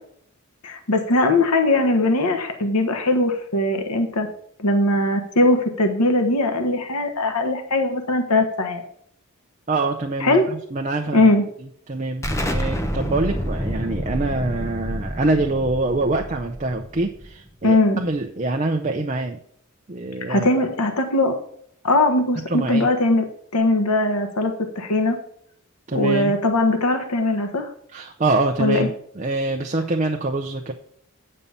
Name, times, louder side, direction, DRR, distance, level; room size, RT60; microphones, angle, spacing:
voice 1, 0.6-4.3 4.6-8.8 10.2-10.5 11.1-11.4 17.6-18.0 20.3-21.3 21.8-23.2 23.5-25.2 25.9-27.7 28.6-28.9, left 2 dB, 90° left, 5 dB, 1.2 m, -20 dB
voice 2, 9.7-11.3 11.6-19.4 19.9-20.5 22.5-22.9 25.9-26.3 27.9-30.7, right 2 dB, 35° right, 3 dB, 0.6 m, -25 dB
Explosion, 12.2-17.7, equal, 15° left, 0.8 m, -28 dB
8.7 x 5.5 x 5.5 m, 0.66 s
head